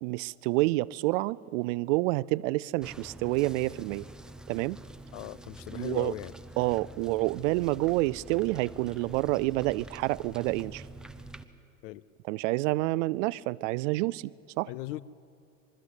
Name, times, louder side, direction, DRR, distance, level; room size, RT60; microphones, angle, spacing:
voice 1, 0.0-4.1 4.5-4.8 5.7-6.1 6.6-10.9 12.2-14.7, right 20 dB, 65° right, 0.5 m, -28 dB
sound 1, 2.8-11.4, right 1 dB, ahead, 0.7 m, -47 dB
voice 2, 5.1-6.3 11.8-12.0 14.7-15.0, left 16 dB, 65° left, 0.7 m, -38 dB
23.5 x 13.5 x 8.2 m
hypercardioid pair, 100°, 40 cm